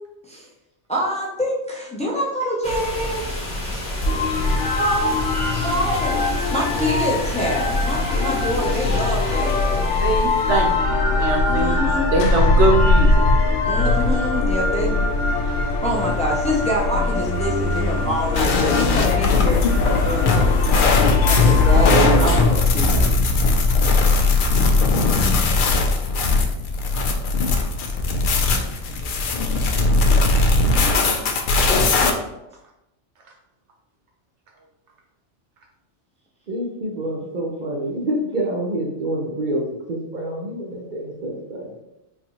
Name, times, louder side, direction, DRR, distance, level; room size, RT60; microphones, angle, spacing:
voice 1, 0.9-3.5 4.8-5.3 5.6-10.0 11.5-12.1 13.7-14.9 15.8-20.4 21.2-23.1, equal, 10° left, -3 dB, 0.3 m, -26 dB
sound 1, 2.6-10.8, left 1 dB, 40° left, 1.0 m, -28 dB
sound 2, 4.1-22.4, left 3 dB, 80° left, 0.9 m, -21 dB
voice 2, 10.0-11.8 12.1-13.2, right 2 dB, 75° right, 1 dB, 0.9 m, -22 dB
sound 3, 18.3-32.1, left 3 dB, 60° left, 0.5 m, -19 dB
voice 3, 36.5-41.8, right 1 dB, 50° right, -1 dB, 0.7 m, -27 dB
4.0 x 2.7 x 2.9 m, 0.89 s
omnidirectional pair, 1.2 m